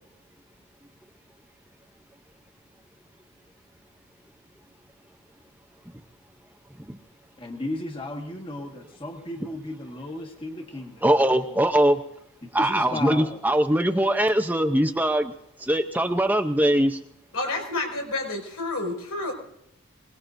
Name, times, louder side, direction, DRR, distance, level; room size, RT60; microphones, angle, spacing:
voice 1, 7.4-11.6 12.4-13.4, left 1 dB, 25° left, 2 dB, 1.7 m, -35 dB
voice 2, 11.0-12.0 12.5-15.3 15.6-17.0, right 1 dB, 10° right, 7 dB, 0.7 m, -21 dB
voice 3, 17.3-19.3, left 2 dB, 85° left, 2 dB, 5.5 m, -29 dB
25.5 x 20.0 x 2.6 m, 0.78 s
head